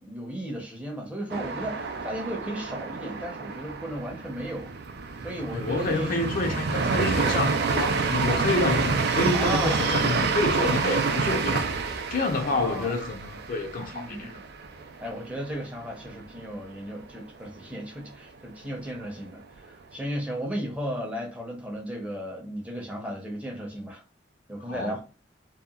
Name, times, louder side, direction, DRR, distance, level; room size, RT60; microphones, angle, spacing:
voice 1, 0.0-4.7 5.2-6.2 9.3-9.9 12.4-12.9 13.9-14.3 15.0-24.0 24.5-25.0, equal, 5° right, 0.6 m, -35 dB
sound 1, 1.3-15.0 15.4-15.5 15.8-16.4, right 4 dB, 55° right, 0.4 m, -28 dB
voice 2, 5.5-11.7 12.1-14.3 24.7-25.0, left 2 dB, 45° left, 0.5 m, -28 dB
2.8 x 2.2 x 2.3 m
head